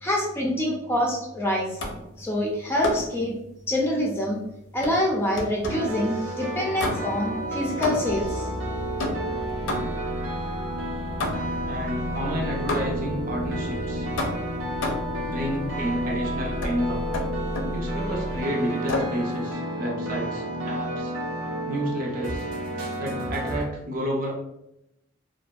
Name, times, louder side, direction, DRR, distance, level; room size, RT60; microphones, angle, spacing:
voice 1, 0.0-1.8 2.2-3.3 3.7-4.4 4.7-8.5, left 1 dB, 15° left, -2 dB, 0.3 m, -26 dB
sound 1, 1.8-2.1 2.8-3.2 4.8-5.9 6.8-7.3 7.8-8.3 9.0-10.1 11.2-11.7 12.7-13.1 14.2-15.2 16.6-16.8 17.1-17.8 18.9-19.2, left 2 dB, 80° left, 0.5 m, -31 dB
sound 2, 5.7-23.6, right 1 dB, 90° right, 0.6 m, -31 dB
sound 3, 8.0-18.4, equal, 10° right, 0.7 m, -37 dB
voice 2, 11.6-14.1 15.2-17.1 17.7-21.1 21.7-22.5 23.0-24.3, equal, 45° right, -1 dB, 0.5 m, -30 dB
2.5 x 2.2 x 2.3 m, 0.84 s
head